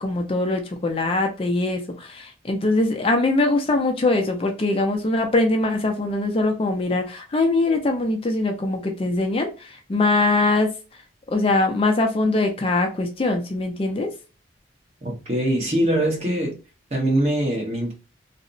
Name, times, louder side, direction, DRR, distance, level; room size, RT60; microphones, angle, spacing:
voice 1, 0.0-10.7 11.3-14.1, left 2 dB, 30° left, 0.4 m, -22 dB
voice 2, 15.0-16.6 16.9-17.9, right 1 dB, 35° right, 0.9 m, -22 dB
2.8 x 2.0 x 2.5 m
head